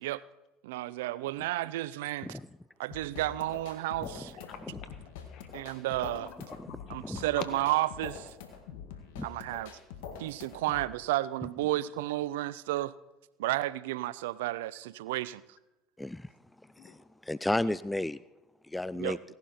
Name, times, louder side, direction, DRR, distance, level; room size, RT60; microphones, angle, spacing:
voice 1, 0.6-2.4 2.8-4.4 5.5-6.3 6.9-8.3 9.2-9.7 10.2-12.9 13.4-15.4 18.9-19.2, right 16 dB, 80° right, 0.4 m, -32 dB
sound 1, 2.9-10.9, left 7 dB, 75° left, 1.7 m, -45 dB
voice 2, 4.4-5.6 6.0-7.5 16.8-17.0, left 8 dB, 60° left, 1.8 m, -47 dB
voice 3, 16.0-16.3 16.8-17.0 17.2-18.2 18.7-19.2, left 1 dB, 10° left, 0.4 m, -32 dB
17.0 x 11.5 x 4.3 m
hypercardioid pair, 75°, 0 cm